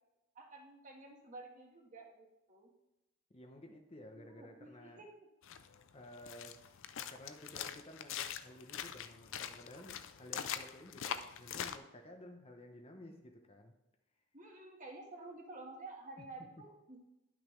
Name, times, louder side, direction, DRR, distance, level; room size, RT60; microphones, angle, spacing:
voice 1, 0.3-2.7 4.1-5.1 14.3-17.0, right 2 dB, 35° right, 0 dB, 1.5 m, -51 dB
voice 2, 3.3-5.0 5.9-6.8 7.1-13.8 16.2-16.3, left 1 dB, 25° left, 3 dB, 0.7 m, -54 dB
sound 1, 5.4-11.8, left 9 dB, 60° left, 0.4 m, -43 dB
10.5 x 6.1 x 3.2 m, 0.94 s
head